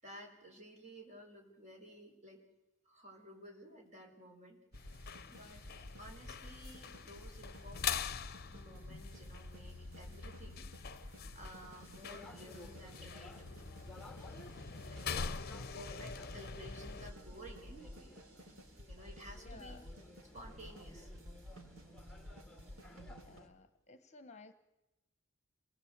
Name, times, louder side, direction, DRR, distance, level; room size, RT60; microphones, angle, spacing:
voice 1, 0.0-2.4 2.9-8.1 8.5-13.6 14.8-15.5 15.7-18.2 18.9-19.8 20.3-21.1, right 1 dB, 35° right, 1 dB, 5.5 m, -54 dB
sound 1, 4.7-17.1, left 6 dB, 50° left, 0.8 m, -44 dB
sound 2, 4.7-23.4, left 1 dB, 85° right, 3.4 m, -53 dB
sound 3, 12.1-23.5, left 1 dB, ahead, 1.8 m, -57 dB
voice 2, 19.4-19.9 23.2-24.5, left 3 dB, 30° left, 10 dB, 1.2 m, -56 dB
27.5 x 20.0 x 8.2 m, 0.97 s
head